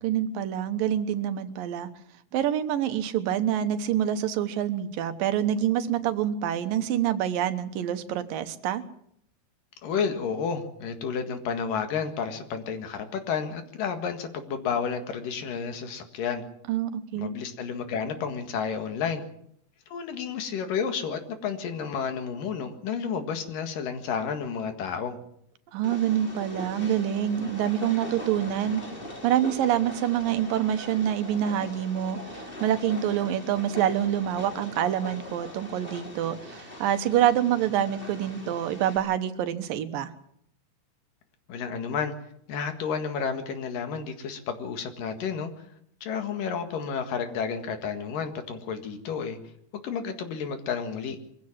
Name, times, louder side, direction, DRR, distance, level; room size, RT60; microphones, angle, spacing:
voice 1, 0.0-1.9 2.3-8.8 16.7-17.3 25.7-28.8 29.2-40.1, right 10 dB, 90° right, 10 dB, 2.9 m, -26 dB
voice 2, 9.8-16.4 17.2-19.2 19.9-25.2 41.5-42.1 42.5-45.5 46.0-49.4 49.7-51.2, left 6 dB, 80° left, 7 dB, 3.5 m, -31 dB
Train, 25.8-39.0, left 1 dB, 15° left, 2.9 m, -41 dB
23.5 x 15.5 x 7.4 m, 0.71 s
omnidirectional pair, 3.9 m